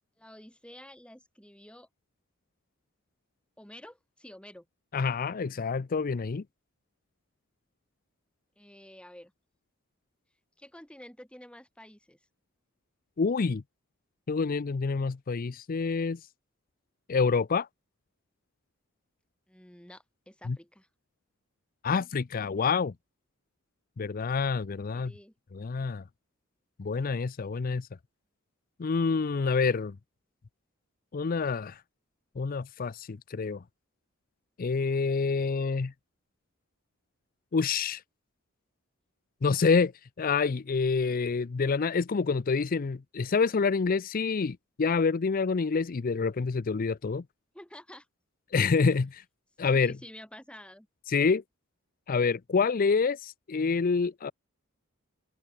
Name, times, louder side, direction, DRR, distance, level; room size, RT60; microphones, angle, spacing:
voice 1, 0.2-1.9 3.6-4.7 8.6-9.3 10.6-12.2 19.5-20.9 24.9-25.3 47.5-48.1 49.7-50.9, left 1 dB, 5° left, 5.7 m, -50 dB
voice 2, 4.9-6.4 13.2-13.6 14.3-16.2 17.1-17.7 20.5-20.6 21.8-22.9 24.0-25.1 25.5-26.0 26.8-27.9 28.8-30.0 31.1-31.8 32.4-33.6 34.6-35.9 37.5-38.0 39.4-39.9 40.2-47.2 48.5-49.2 49.6-49.9 51.1-51.4 52.1-54.3, left 4 dB, 45° left, 0.5 m, -27 dB
head